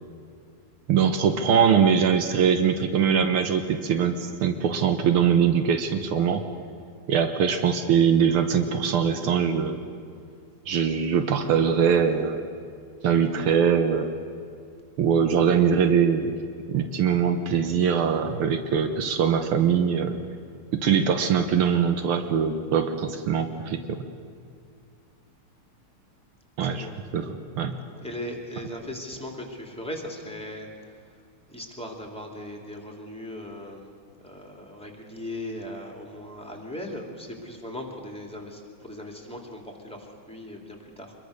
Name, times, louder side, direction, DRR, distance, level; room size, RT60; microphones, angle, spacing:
voice 1, 0.9-6.4 7.1-9.8 10.7-12.4 13.0-14.1 15.0-16.3 16.7-20.2 20.7-24.0 26.6-26.8 27.1-27.8, right 7 dB, 80° right, 7 dB, 1.9 m, -22 dB
voice 2, 26.6-26.9 27.9-31.2 31.5-33.9 34.2-41.2, left 1 dB, 5° left, 1 dB, 2.8 m, -38 dB
24.0 x 22.0 x 6.6 m, 2.3 s
omnidirectional pair, 2.4 m